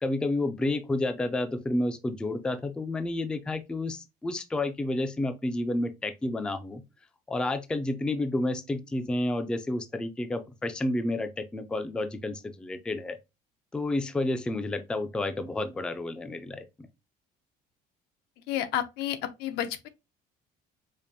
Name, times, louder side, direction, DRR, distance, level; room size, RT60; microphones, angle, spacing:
voice 1, 0.0-6.8 7.3-13.2 13.7-16.7, left 2 dB, 5° left, 0.3 m, -30 dB
voice 2, 18.5-19.9, left 11 dB, 85° left, 0.7 m, -31 dB
5.1 x 2.5 x 2.6 m
cardioid pair, 165°, 16 cm